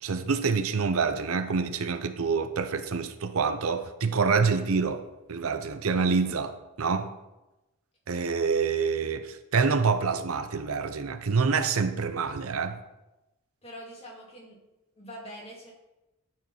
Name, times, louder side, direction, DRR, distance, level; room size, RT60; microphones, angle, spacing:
voice 1, 0.0-7.1 8.1-12.8, right 5 dB, 70° right, 0.6 m, -27 dB
voice 2, 13.6-14.6 15.0-15.7, equal, 25° left, 2.2 m, -44 dB
12.0 x 4.6 x 5.5 m
head